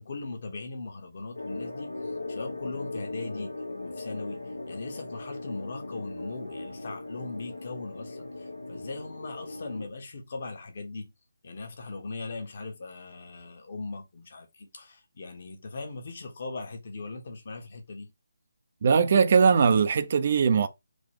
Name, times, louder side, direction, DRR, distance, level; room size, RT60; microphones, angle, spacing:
voice 1, 0.0-11.1 11.4-18.1, left 3 dB, 50° left, 1.2 m, -39 dB
sound 1, 1.3-9.9, left 2 dB, 80° left, 1.1 m, -38 dB
voice 2, 18.8-20.7, right 6 dB, 45° right, 0.6 m, -20 dB
3.8 x 2.4 x 3.4 m
figure-of-eight pair, 155°, 0 cm